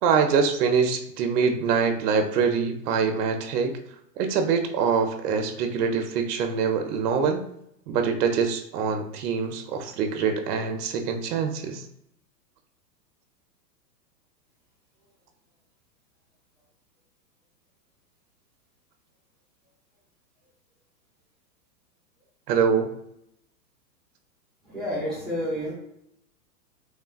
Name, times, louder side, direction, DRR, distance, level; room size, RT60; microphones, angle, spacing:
voice 1, 0.0-3.8 4.2-7.4 7.9-11.8 22.5-22.9, right 6 dB, 70° right, 7 dB, 0.5 m, -24 dB
voice 2, 24.6-25.7, equal, ahead, -9 dB, 0.6 m, -29 dB
3.1 x 2.2 x 2.2 m, 0.76 s
hypercardioid pair, 145°, 49 cm